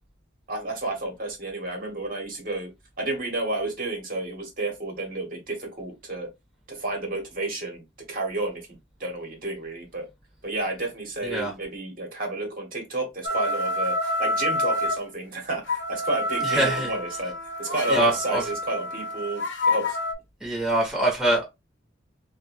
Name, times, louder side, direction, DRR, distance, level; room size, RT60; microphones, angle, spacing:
voice 1, 0.5-2.7 3.0-6.3 6.7-8.7 9.0-10.1 10.4-20.0, right 2 dB, 45° right, 1.1 m, -31 dB
sound 1, 13.2-15.0 15.7-20.1, left 1 dB, 70° left, 0.7 m, -28 dB
voice 2, 16.4-16.9 17.9-18.4 20.4-21.4, right 1 dB, 5° right, 1.0 m, -24 dB
3.4 x 2.2 x 3.4 m
head